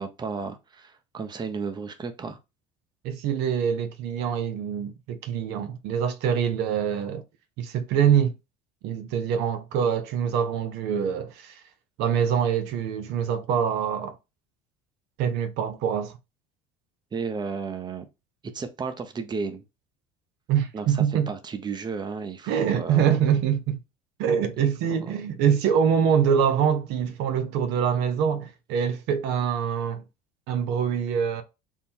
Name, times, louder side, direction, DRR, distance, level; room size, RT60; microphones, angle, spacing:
voice 1, 0.0-2.4 17.1-18.1 18.4-19.6 20.7-23.2 24.6-25.1, right 5 dB, 25° right, 0.7 m, -33 dB
voice 2, 3.0-7.2 7.6-8.3 8.8-11.6 12.0-14.1 15.2-16.2 20.5-21.3 22.5-23.8 24.2-30.0 30.5-31.4, right 8 dB, 70° right, 0.6 m, -24 dB
3.6 x 2.1 x 4.3 m
supercardioid pair, 95°, 18 cm